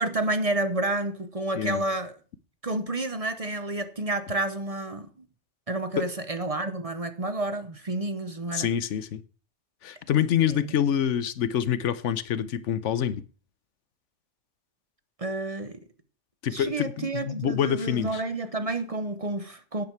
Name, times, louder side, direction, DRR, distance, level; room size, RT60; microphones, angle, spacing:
voice 1, 0.0-2.1 2.6-5.3 5.7-8.7 10.5-10.7 15.2-15.8 16.5-19.8, right 2 dB, 35° right, 0.9 m, -30 dB
voice 2, 8.5-9.2 9.8-13.2 16.4-18.2, left 9 dB, 85° left, 1.1 m, -26 dB
10.5 x 9.6 x 4.6 m
omnidirectional pair, 1.2 m